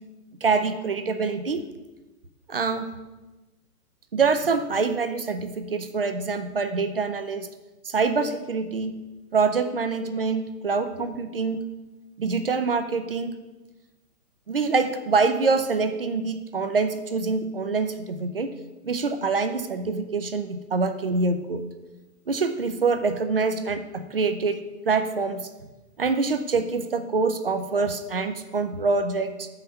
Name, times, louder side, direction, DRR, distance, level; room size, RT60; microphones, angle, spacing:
voice 1, 0.4-1.6 2.5-2.9 4.1-7.5 7.8-8.9 9.3-11.6 12.2-13.3 14.5-18.5 18.8-21.6 22.3-24.6 24.9-25.5 26.0-29.5, right 4 dB, 40° right, 9 dB, 0.4 m, -25 dB
7.0 x 5.7 x 5.5 m, 1.1 s
hypercardioid pair, 145°, 49 cm